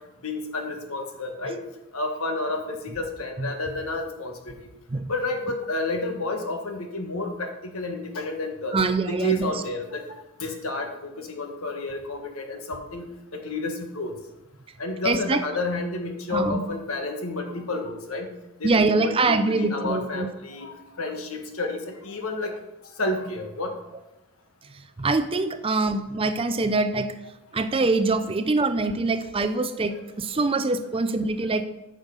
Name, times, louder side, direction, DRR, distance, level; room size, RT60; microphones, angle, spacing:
voice 1, 0.2-1.6 1.9-4.5 5.1-8.8 9.1-10.0 10.4-14.2 14.8-18.3 18.6-22.5 23.0-23.8 29.9-30.0 30.3-30.5, left 2 dB, 70° left, 4 dB, 1.4 m, -30 dB
voice 2, 8.7-9.5 15.0-15.4 16.3-16.6 18.6-20.3 24.6-27.2 27.5-31.7, right 3 dB, 25° right, 10 dB, 0.4 m, -24 dB
9.1 x 6.4 x 5.3 m, 0.96 s
head